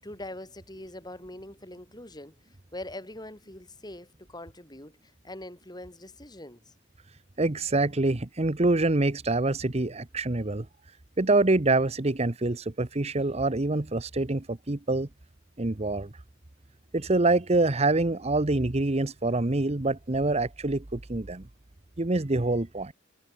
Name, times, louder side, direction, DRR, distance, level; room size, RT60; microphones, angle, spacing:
voice 1, 0.0-2.3 2.7-6.7, left 1 dB, 20° left, 8.0 m, -43 dB
voice 2, 7.4-10.7 11.2-15.1 15.6-16.1 16.9-21.4 22.0-22.9, right 2 dB, 35° right, 1.0 m, -25 dB
head